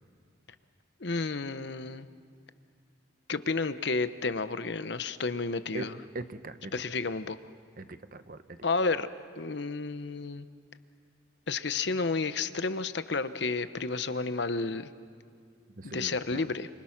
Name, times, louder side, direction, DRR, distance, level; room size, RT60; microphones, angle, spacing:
voice 1, 1.0-2.1 3.3-6.0 6.7-7.4 8.6-9.1 9.4-10.5 11.5-14.9 15.8-16.7, left 4 dB, 60° left, 12 dB, 0.9 m, -31 dB
voice 2, 6.1-6.7 7.8-8.6 15.8-16.5, right 2 dB, 45° right, 10 dB, 0.9 m, -40 dB
29.5 x 26.5 x 6.0 m, 2.3 s
head